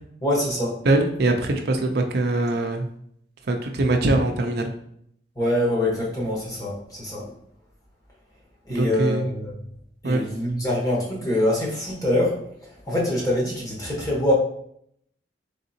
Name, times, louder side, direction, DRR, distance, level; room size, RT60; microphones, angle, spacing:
voice 1, 0.2-0.7 5.4-7.3 8.7-9.5 10.0-12.4 12.9-14.3, left 1 dB, 20° left, -4 dB, 1.1 m, -24 dB
voice 2, 0.8-2.9 3.5-4.7 8.7-9.3 10.0-10.2, right 2 dB, 60° right, 4 dB, 0.5 m, -22 dB
3.9 x 3.6 x 2.7 m, 0.69 s
head